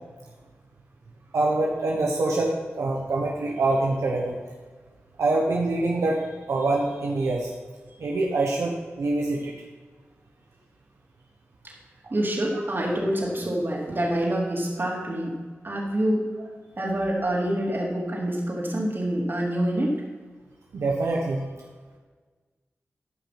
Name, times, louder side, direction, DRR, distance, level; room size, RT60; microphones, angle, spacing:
voice 1, 1.3-4.4 5.2-6.2 6.5-7.5 8.0-9.5 12.0-12.1 16.4-16.5 20.7-21.4, right 2 dB, 90° right, -2 dB, 1.2 m, -25 dB
voice 2, 12.1-15.3 15.6-16.2 16.8-19.9, right 1 dB, 50° right, -2 dB, 3.2 m, -26 dB
13.5 x 5.8 x 6.0 m, 1.4 s
cardioid pair, 45°, 5 cm